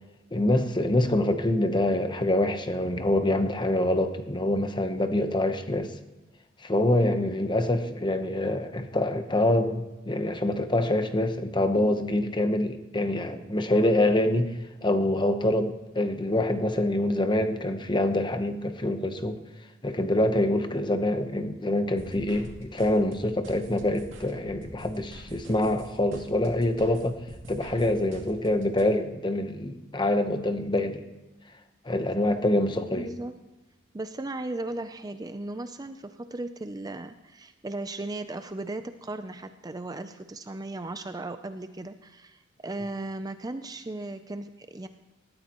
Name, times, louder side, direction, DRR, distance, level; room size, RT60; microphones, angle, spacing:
voice 1, 0.3-5.9 6.6-14.5 14.8-19.4 19.8-27.2 27.5-31.0 31.8-33.1, left 1 dB, 25° left, 8 dB, 1.0 m, -25 dB
sound 1, 21.9-28.8, right 1 dB, 85° right, 2.5 m, -46 dB
voice 2, 32.9-33.3 33.9-44.9, right 2 dB, 20° right, 9 dB, 0.5 m, -36 dB
19.5 x 13.5 x 3.0 m, 1.1 s
head